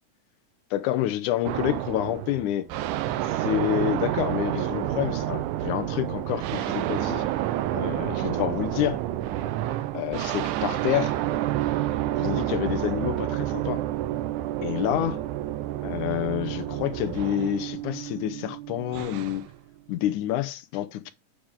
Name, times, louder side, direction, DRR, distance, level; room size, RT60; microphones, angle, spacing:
voice 1, 0.7-2.7 3.3-7.2 7.7-9.0 9.9-11.2 12.2-13.8 14.6-15.2 15.8-19.4 19.9-21.1, left 13 dB, 80° left, 2.3 m, -28 dB
sound 1, 1.5-19.5, right 14 dB, 85° right, 2.2 m, -29 dB
9.3 x 5.0 x 3.7 m
omnidirectional pair, 3.6 m